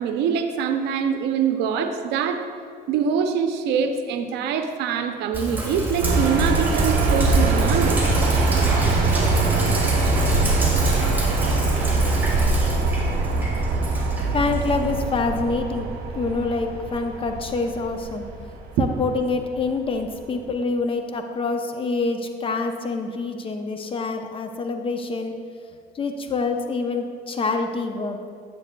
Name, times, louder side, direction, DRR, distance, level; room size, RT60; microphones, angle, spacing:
voice 1, 0.0-2.5 2.9-8.0 18.8-18.9, right 7 dB, 85° right, 7 dB, 0.6 m, -24 dB
Sink (filling or washing), 5.3-15.0, right 1 dB, 10° right, 1.9 m, -26 dB
sound 1, 6.0-20.0, right 3 dB, 65° right, 1.0 m, -23 dB
voice 2, 14.3-15.9 16.1-18.3 18.8-25.3 25.9-28.3, left 3 dB, 30° left, 5 dB, 0.7 m, -26 dB
9.8 x 7.6 x 2.3 m, 2.2 s
cardioid pair, 110°, 17 cm